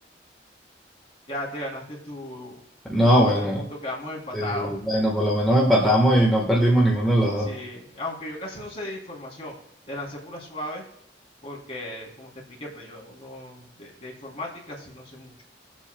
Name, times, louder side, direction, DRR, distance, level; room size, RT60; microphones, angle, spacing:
voice 1, 1.3-2.6 3.2-4.8 7.4-9.6 9.9-10.8 11.4-15.3, left 1 dB, 35° left, -3 dB, 3.2 m, -36 dB
voice 2, 2.9-3.6 4.3-7.5, equal, ahead, -4 dB, 1.4 m, -20 dB
20.0 x 7.5 x 2.3 m, 0.72 s
head